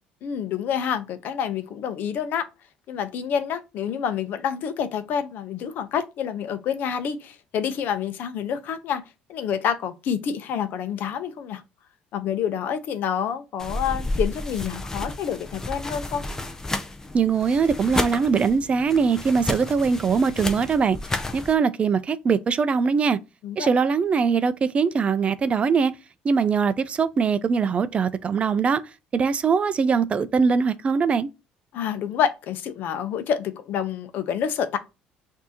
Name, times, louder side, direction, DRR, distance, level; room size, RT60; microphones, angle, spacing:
voice 1, 0.2-2.5 2.9-9.0 9.3-11.6 12.1-16.2 23.4-23.7 31.7-34.8, left 8 dB, 65° left, 0.7 m, -28 dB
sound 1, 13.6-21.5, left 2 dB, 15° left, 0.6 m, -31 dB
voice 2, 17.1-23.2 23.6-25.9 26.2-28.8 29.1-31.3, right 5 dB, 35° right, 0.4 m, -22 dB
6.0 x 2.7 x 2.8 m
supercardioid pair, 90°, 3 cm